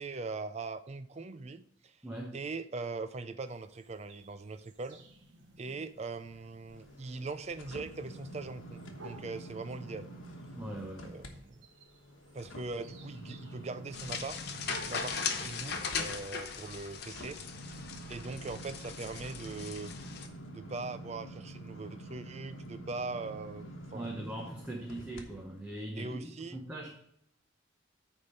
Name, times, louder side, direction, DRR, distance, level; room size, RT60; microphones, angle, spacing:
voice 1, 0.0-2.0 2.3-5.0 5.6-10.1 11.0-11.7 12.3-14.6 14.8-17.4 18.1-20.0 20.5-24.2 24.9-25.1 26.0-26.6, right 3 dB, 30° right, 13 dB, 0.4 m, -41 dB
voice 2, 2.0-2.4 10.6-11.1 23.9-26.2 26.5-27.0, right 1 dB, 10° right, -1 dB, 0.8 m, -40 dB
sound 1, 3.5-17.2, right 2 dB, 60° right, 1.1 m, -57 dB
sound 2, 6.7-11.3 11.7-25.2 25.7-25.8, right 1 dB, 75° left, 1.2 m, -48 dB
sound 3, 13.9-20.3, left 5 dB, 50° left, 0.8 m, -38 dB
9.4 x 3.6 x 6.6 m, 0.71 s
head